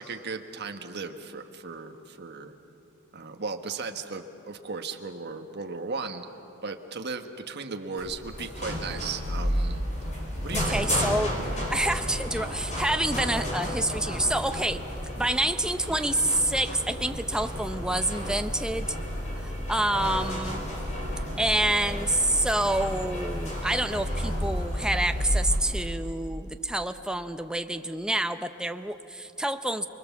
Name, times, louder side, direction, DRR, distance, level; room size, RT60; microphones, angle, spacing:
voice 1, 0.0-2.5 3.1-6.3 6.6-9.8 10.4-11.1, right 4 dB, 50° right, 5 dB, 1.4 m, -36 dB
sound 1, 8.0-25.6, equal, 35° left, 4.8 m, -32 dB
voice 2, 10.6-14.8 15.2-19.0 19.4-20.6 21.4-29.9, right 1 dB, 5° right, 8 dB, 0.7 m, -28 dB
29.5 x 21.5 x 7.3 m, 3.0 s
head